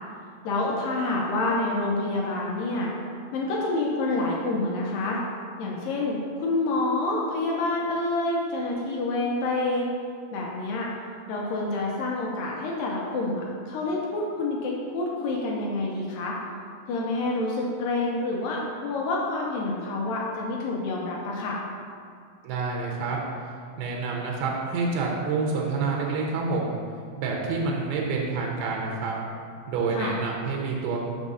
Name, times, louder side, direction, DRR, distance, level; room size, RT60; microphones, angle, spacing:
voice 1, 0.4-2.9 3.3-5.2 5.6-9.9 10.3-10.9 11.3-16.4 16.9-21.6 29.9-30.1, left 2 dB, 75° left, -3 dB, 2.2 m, -28 dB
voice 2, 22.4-23.2 23.8-26.8 27.2-29.2 29.7-31.0, right 4 dB, 80° right, -2 dB, 2.7 m, -28 dB
6.3 x 4.0 x 6.1 m, 2.3 s
omnidirectional pair, 4.5 m